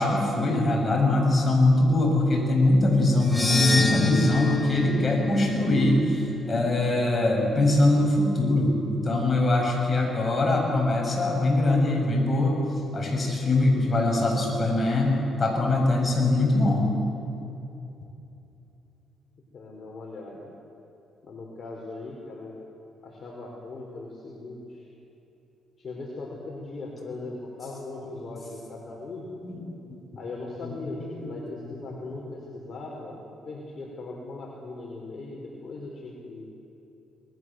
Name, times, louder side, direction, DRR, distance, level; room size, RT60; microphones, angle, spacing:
voice 1, 0.0-12.6 12.9-16.9 29.4-29.6 30.6-30.8 31.2-31.4 31.7-31.8 32.1-32.2, left 2 dB, 30° left, -1 dB, 8.0 m, -22 dB
sound 1, 3.2-7.5, left 3 dB, 10° left, 3.8 m, -29 dB
voice 2, 19.5-20.5 21.2-22.5 23.0-24.8 25.8-29.3 30.2-33.2 33.5-36.4, left 2 dB, 45° left, -2 dB, 4.6 m, -39 dB
28.0 x 21.0 x 7.8 m, 2.9 s
cardioid pair, 90°, 0 cm